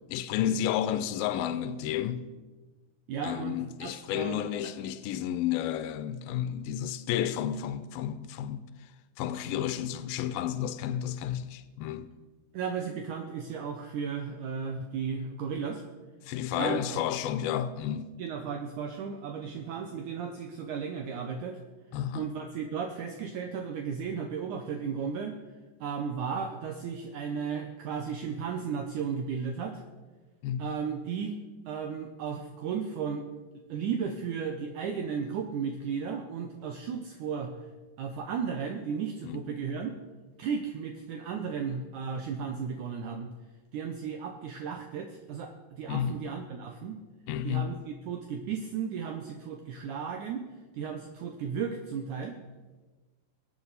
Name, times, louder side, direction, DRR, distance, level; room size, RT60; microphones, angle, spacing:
voice 1, 0.1-2.2 3.2-8.9 9.2-12.1 16.2-18.1 21.9-22.3 30.4-30.7 39.2-39.4 45.9-46.2 47.3-47.7, left 10 dB, 90° left, 2.5 m, -31 dB
voice 2, 3.1-4.7 12.5-15.8 16.6-17.0 18.2-21.6 22.1-25.3 25.8-29.8 30.6-31.4 31.7-33.3 33.7-37.5 38.0-40.0 40.4-43.3 43.7-47.0 47.4-50.5 50.7-52.4, right 6 dB, 70° right, 2.1 m, -35 dB
22.5 x 8.8 x 4.1 m
omnidirectional pair, 4.1 m